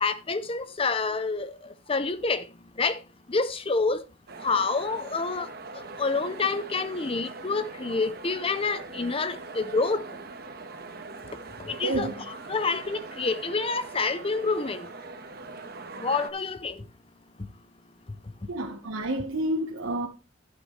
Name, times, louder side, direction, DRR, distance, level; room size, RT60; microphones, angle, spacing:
voice 1, 0.0-1.5 1.9-2.5 2.8-3.0 3.3-4.0 4.4-5.5 6.0-10.0 11.6-14.9 16.0-16.8, left 4 dB, 30° left, 0.6 m, -28 dB
sound 1, 4.3-16.3, right 3 dB, 50° right, 1.3 m, -42 dB
voice 2, 11.8-12.2 18.5-20.1, right 1 dB, 85° right, 1.3 m, -29 dB
11.5 x 9.5 x 3.2 m
head